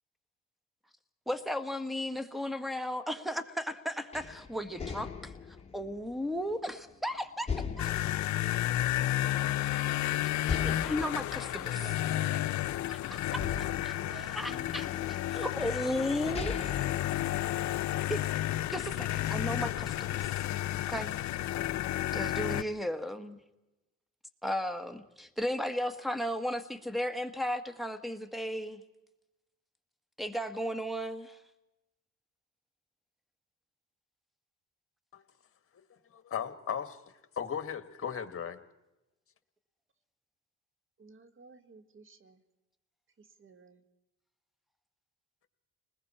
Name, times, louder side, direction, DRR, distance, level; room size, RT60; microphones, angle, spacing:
voice 1, 1.3-5.3 5.7-7.5 7.8-7.9 10.5-11.7 12.9-13.2 14.3-14.9 15.3-16.7 18.1-18.2 18.7-20.4 20.9-21.2 22.1-23.4 24.4-28.8 30.2-31.4, equal, ahead, 9 dB, 1.6 m, -35 dB
sound 1, 4.1-6.9 7.5-9.4 9.8-9.9 10.4-12.8 13.4-15.0 15.7-15.8 16.2-18.0, left 5 dB, 20° left, 2.3 m, -40 dB
sound 2, 7.8-22.6, left 14 dB, 70° left, 0.6 m, -32 dB
voice 2, 11.6-12.7 13.3-15.5, right 6 dB, 80° right, 4 dB, 2.6 m, -52 dB
voice 3, 35.9-37.0 37.4-38.6, left 8 dB, 45° left, 9 dB, 1.8 m, -36 dB
voice 4, 41.0-42.4 43.2-43.8, right 4 dB, 40° right, 10 dB, 1.8 m, -56 dB
30.0 x 20.5 x 4.4 m, 0.97 s
cardioid pair, 90°, 30 cm